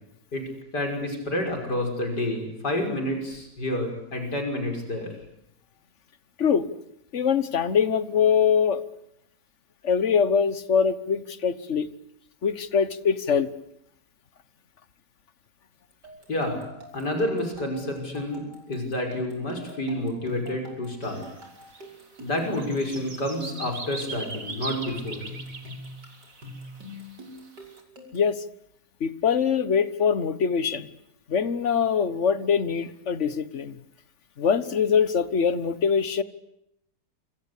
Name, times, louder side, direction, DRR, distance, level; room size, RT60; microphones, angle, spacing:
voice 1, 0.7-5.1 16.3-16.6 16.9-21.2 22.2-25.2, left 1 dB, 80° left, 4 dB, 6.4 m, -29 dB
voice 2, 7.1-8.8 9.8-11.9 12.4-13.5 28.1-28.4 29.0-30.9 31.3-33.8 34.4-36.2, left 6 dB, 45° left, 14 dB, 1.5 m, -23 dB
sound 1, 16.0-28.3, equal, 85° right, 6.5 m, -44 dB
sound 2, 21.0-27.8, right 3 dB, 50° right, 3.3 m, -41 dB
28.0 x 25.5 x 8.4 m, 0.81 s
omnidirectional pair, 1.8 m